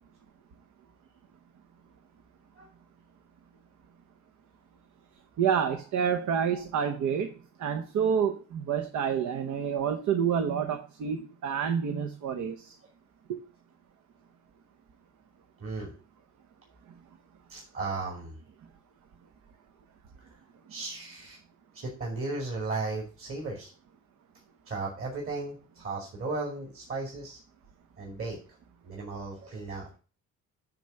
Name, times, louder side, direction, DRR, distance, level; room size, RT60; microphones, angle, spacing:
voice 1, 5.4-7.3 7.6-12.8 13.3-13.4, right 7 dB, 70° right, 0.9 m, -28 dB
voice 2, 15.6-15.9 17.5-18.4 20.2-20.4 20.7-21.4 21.7-23.7 24.7-27.4 28.0-28.4 28.8-29.9, right 3 dB, 45° right, 2.7 m, -35 dB
8.9 x 3.5 x 6.6 m
cardioid pair, 90°, 30 cm